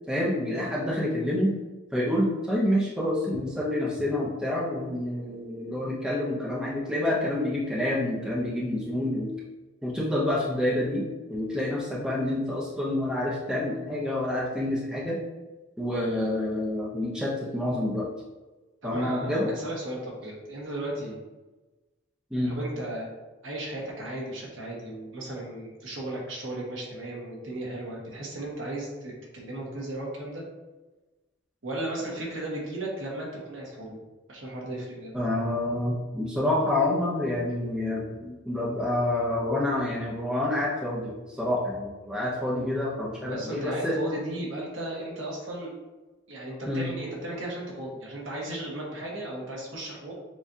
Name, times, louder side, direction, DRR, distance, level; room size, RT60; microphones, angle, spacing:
voice 1, 0.1-1.5 1.9-9.3 9.8-11.0 11.3-15.2 15.8-18.1 18.8-19.5 22.3-22.5 35.1-43.9 46.7-46.9, left 1 dB, 5° right, -6 dB, 0.7 m, -28 dB
voice 2, 18.8-21.2 22.4-23.1 23.4-30.4 31.6-34.0 34.3-35.1 43.2-45.7 46.3-50.1, right 1 dB, 75° right, -3 dB, 1.2 m, -35 dB
7.0 x 2.5 x 2.7 m, 1.2 s
head